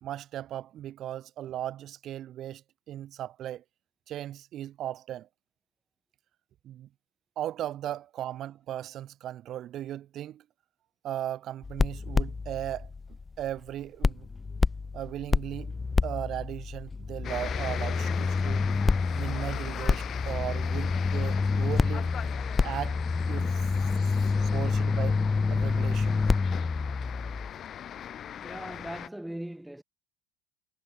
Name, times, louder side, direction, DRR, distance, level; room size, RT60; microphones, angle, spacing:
voice 1, 0.0-3.6 4.1-5.3 6.6-6.9 7.4-10.4 11.0-12.9 13.4-14.3 14.9-15.7 16.0-18.7 19.1-22.2 22.6-23.0 23.3-23.6 24.4-25.2 25.5-26.2, right 12 dB, 45° right, 2.7 m, -37 dB
sound 1, 11.6-13.7 14.0-27.5, left 4 dB, 20° left, 1.3 m, -28 dB
sound 2, 17.2-29.1, left 9 dB, 40° left, 6.4 m, -39 dB
voice 2, 28.4-29.8, right 1 dB, 5° right, 3.6 m, -39 dB
supercardioid pair, 100°, 0 cm